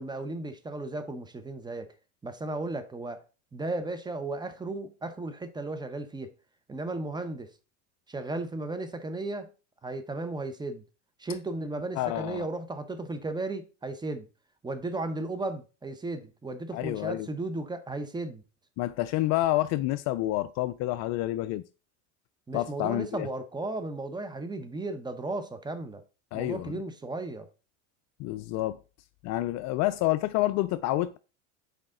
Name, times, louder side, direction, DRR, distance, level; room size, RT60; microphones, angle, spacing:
voice 1, 0.0-1.9 2.2-3.2 3.5-6.3 6.7-7.5 8.1-9.5 9.8-10.8 11.2-14.3 14.6-18.4 22.5-26.0 26.3-27.5, right 2 dB, 10° right, 0.8 m, -35 dB
voice 2, 12.0-12.5 16.7-17.3 18.8-21.6 22.5-23.3 26.3-26.8 28.2-28.8 29.2-31.2, left 16 dB, 50° left, 0.4 m, -28 dB
6.6 x 4.8 x 3.8 m
supercardioid pair, 110°, 37 cm